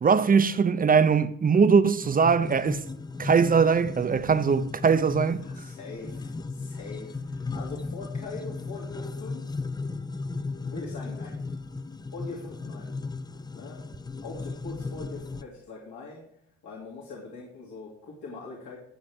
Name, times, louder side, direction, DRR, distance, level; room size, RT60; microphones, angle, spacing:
voice 1, 0.0-2.8 3.2-5.4, right 5 dB, 30° right, 0.6 m, -21 dB
sound 1, 2.0-15.4, left 3 dB, 15° left, 0.4 m, -36 dB
voice 2, 5.4-9.5 10.6-11.4 12.1-12.9 13.5-13.8 14.2-16.2 16.6-18.8, left 3 dB, 75° left, 2.7 m, -42 dB
17.0 x 6.4 x 3.6 m
cardioid pair, 90°, 30 cm